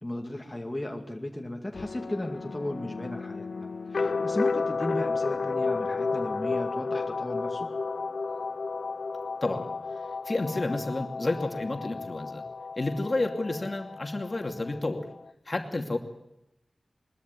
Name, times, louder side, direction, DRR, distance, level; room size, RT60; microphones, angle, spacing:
voice 1, 0.0-7.7, left 1 dB, 20° left, 2 dB, 2.3 m, -36 dB
sound 1, 1.7-15.3, left 4 dB, 80° left, 0.7 m, -32 dB
voice 2, 10.3-12.4 12.8-15.1 15.5-16.0, left 2 dB, 45° left, 4 dB, 2.6 m, -30 dB
21.5 x 13.0 x 9.4 m, 0.87 s
wide cardioid pair, 55°, 0 cm